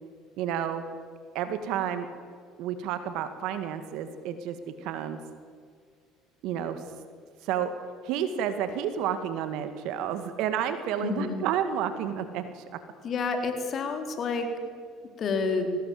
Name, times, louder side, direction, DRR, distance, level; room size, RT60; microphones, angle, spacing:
voice 1, 0.4-0.8 1.3-2.1 2.6-5.2 6.4-6.8 7.4-7.7 8.0-12.8, right 9 dB, 65° right, 10 dB, 2.1 m, -30 dB
voice 2, 11.0-11.4 13.0-14.5 15.2-15.7, left 4 dB, 45° left, 5 dB, 4.0 m, -29 dB
24.0 x 18.5 x 7.9 m, 2.1 s
hypercardioid pair, 65°, 0 cm